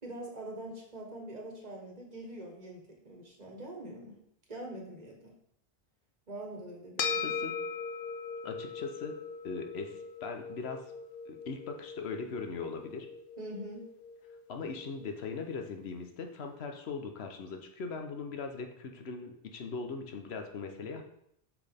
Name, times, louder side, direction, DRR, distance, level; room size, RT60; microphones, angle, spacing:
voice 1, 0.0-4.2 4.5-5.3 6.3-7.3 13.4-13.9, right 1 dB, 45° right, -1 dB, 1.5 m, -44 dB
sound 1, 7.0-15.6, left 5 dB, 65° left, 0.9 m, -40 dB
voice 2, 7.2-7.5 8.4-9.2 9.4-10.9 11.3-13.1 14.5-21.0, left 4 dB, 90° left, 4 dB, 1.1 m, -40 dB
6.1 x 6.0 x 3.5 m, 0.74 s
omnidirectional pair, 1.0 m